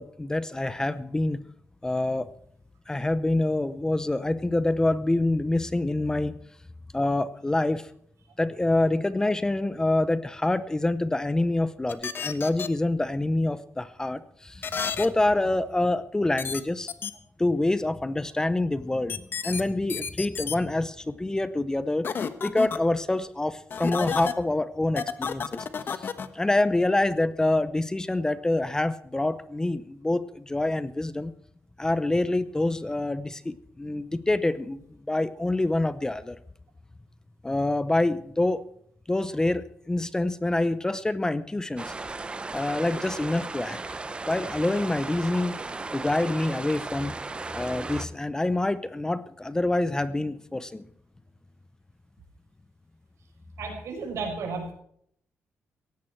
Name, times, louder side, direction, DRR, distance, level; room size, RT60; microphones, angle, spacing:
voice 1, 0.0-1.4 1.8-2.3 2.9-6.4 6.9-7.9 8.4-14.7 15.0-16.9 17.4-22.1 22.4-31.3 31.8-34.8 35.1-36.4 37.4-38.6 39.1-41.9 42.5-43.8 44.3-45.6 45.9-47.2 47.5-50.8, left 2 dB, 15° left, 14 dB, 0.7 m, -26 dB
sound 1, 11.9-12.7 14.6-15.1 16.4-16.6 16.9-17.1 19.1-19.6 19.9-20.6 22.0-22.8 23.7-24.3 25.0-26.3, left 6 dB, 45° left, 1.2 m, -31 dB
sound 2, 41.8-48.1, right 3 dB, 20° right, 0.8 m, -36 dB
voice 2, 53.6-54.7, right 4 dB, 80° right, 2 dB, 5.9 m, -33 dB
17.0 x 15.0 x 4.5 m, 0.67 s
cardioid pair, 130°, 5 cm